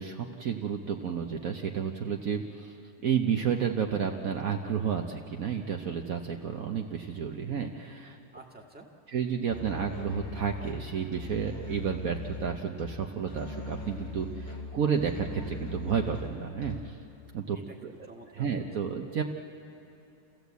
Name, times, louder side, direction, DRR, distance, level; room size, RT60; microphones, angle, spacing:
voice 1, 0.0-2.8 3.0-8.2 9.1-17.0 17.3-17.6 17.8-17.9 18.4-19.2, right 7 dB, 55° right, 2 dB, 1.3 m, -31 dB
voice 2, 8.3-8.9 17.5-18.9, right 2 dB, 5° right, 0 dB, 1.6 m, -50 dB
Musical instrument, 9.5-17.1, left 2 dB, 85° left, 3.5 m, -40 dB
29.0 x 15.0 x 8.2 m, 2.7 s
omnidirectional pair, 1.9 m